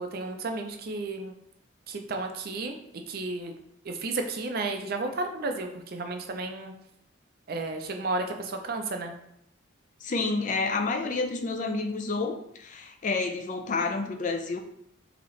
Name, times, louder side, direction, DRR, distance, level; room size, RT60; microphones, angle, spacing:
voice 1, 0.0-1.3 1.9-2.8 3.1-3.5 3.8-6.7 7.5-9.1, right 3 dB, 50° right, 4 dB, 0.5 m, -32 dB
voice 2, 10.0-14.6, left 3 dB, 40° left, 6 dB, 0.4 m, -29 dB
3.9 x 2.9 x 3.1 m, 0.74 s
head